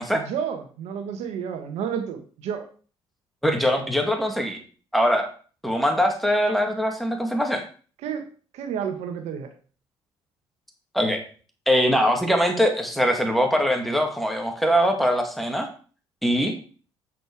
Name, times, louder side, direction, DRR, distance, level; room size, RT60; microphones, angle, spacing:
voice 1, 0.1-2.7 8.0-8.3 8.5-9.5, right 7 dB, 75° right, 6 dB, 1.4 m, -31 dB
voice 2, 3.4-4.6 4.9-5.3 5.6-7.6 10.9-11.2 11.7-15.7 16.2-16.5, equal, ahead, 3 dB, 2.4 m, -22 dB
7.7 x 6.4 x 4.8 m, 0.40 s
supercardioid pair, 70°, 11 cm